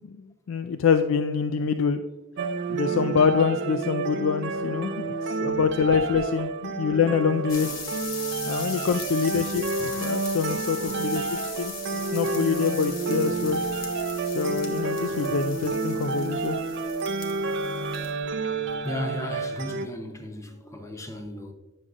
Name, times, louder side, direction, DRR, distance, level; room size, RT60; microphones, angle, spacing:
voice 1, 0.5-2.0 2.7-7.7 8.5-11.3 11.6-13.6 14.3-16.6, left 6 dB, 70° left, 0.3 m, -25 dB
sound 1, 2.4-19.9, right 3 dB, 55° right, 0.4 m, -30 dB
voice 2, 4.8-5.6 6.2-6.4 8.3-8.4 8.8-8.9 17.0-17.1 17.7-17.8 18.8-21.5, left 1 dB, 15° left, 0.7 m, -37 dB
sound 2, 7.5-18.3 18.6-18.9, left 5 dB, 45° left, 1.0 m, -39 dB
9.3 x 6.4 x 2.4 m
head